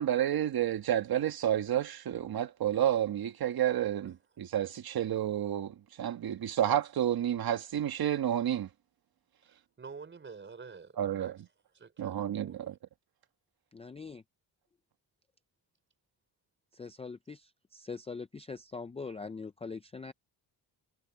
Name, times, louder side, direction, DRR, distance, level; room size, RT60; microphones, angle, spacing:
voice 1, 0.0-8.7 11.0-11.4 12.0-12.8, right 10 dB, 60° right, 1.5 m, -30 dB
voice 2, 9.4-11.3 11.7-12.7, right 5 dB, 25° right, 4.4 m, -49 dB
voice 3, 13.7-14.2 16.7-20.1, left 4 dB, 15° left, 0.4 m, -42 dB
wide cardioid pair, 170°, 42 cm